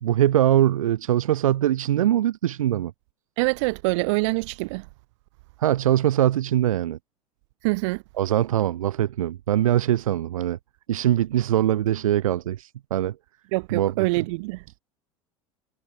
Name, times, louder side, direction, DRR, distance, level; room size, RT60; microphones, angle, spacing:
voice 1, 0.0-2.9 5.6-7.0 8.2-10.6 10.9-13.2 13.7-13.9, right 12 dB, 75° right, 0.5 m, -22 dB
voice 2, 3.4-4.9 7.6-8.0 13.5-14.8, right 25 dB, 60° right, 1.2 m, -25 dB
figure-of-eight pair, 75°, 18 cm